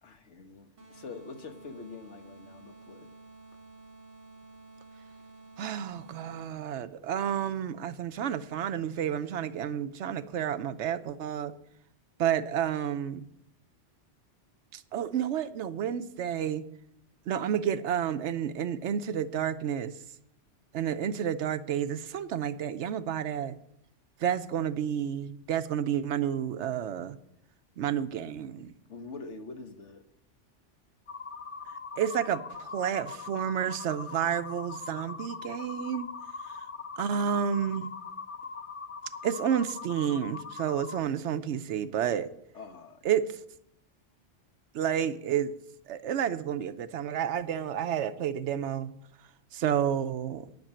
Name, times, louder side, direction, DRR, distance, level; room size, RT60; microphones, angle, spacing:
voice 1, 0.0-3.1 28.9-30.0 42.5-43.0, left 4 dB, 70° left, 7 dB, 1.4 m, -45 dB
sound 1, 0.8-6.7, right 3 dB, 50° right, 2.6 m, -52 dB
voice 2, 5.6-11.5 12.2-13.3 14.7-16.6 17.3-19.9 20.7-23.6 24.2-27.2 27.8-28.7 32.0-36.1 37.0-37.9 39.2-42.3 43.0-43.3 44.7-45.5 45.9-48.9 49.5-50.5, right 9 dB, 75° right, 12 dB, 0.9 m, -30 dB
sound 2, 31.1-41.0, left 5 dB, 40° left, 0.5 m, -41 dB
10.5 x 6.1 x 8.7 m, 0.75 s
omnidirectional pair, 1.2 m